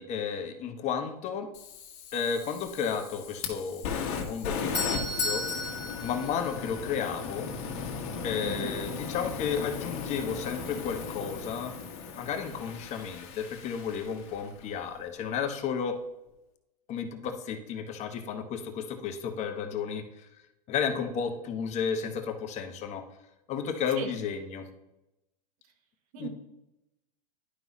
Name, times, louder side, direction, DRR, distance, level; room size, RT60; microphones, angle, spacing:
voice 1, 0.0-1.5 2.1-3.9 4.3-5.6 6.0-7.5 8.2-11.7 12.2-16.0 16.9-20.3 20.7-23.0 23.5-24.7 26.2-26.3, left 7 dB, 35° left, 7 dB, 0.9 m, -33 dB
Fire, 1.5-14.7, left 5 dB, 50° left, 1.6 m, -37 dB
Doorbell, 4.3-7.2, left 2 dB, 15° left, 2.3 m, -33 dB
voice 2, 8.4-8.7 24.0-24.1 26.1-26.3, right 7 dB, 60° right, 7 dB, 1.3 m, -36 dB
11.0 x 5.3 x 3.0 m, 0.93 s
hypercardioid pair, 120°, 20 cm